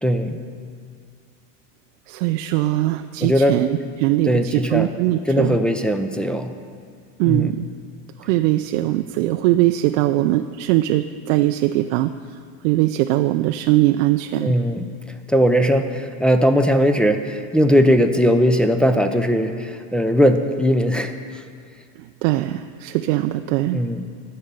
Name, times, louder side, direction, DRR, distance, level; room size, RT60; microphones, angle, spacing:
voice 1, 0.0-0.4 3.2-3.5 4.3-4.9 5.3-6.5 7.2-7.5 14.4-14.9 15.3-21.1 23.7-24.1, equal, 5° left, 4 dB, 0.5 m, -19 dB
voice 2, 2.1-5.6 7.2-7.7 8.2-12.1 12.6-14.5 22.2-23.8, right 15 dB, 75° right, 8 dB, 0.5 m, -20 dB
11.5 x 5.4 x 8.2 m, 2.3 s
supercardioid pair, 125°, 36 cm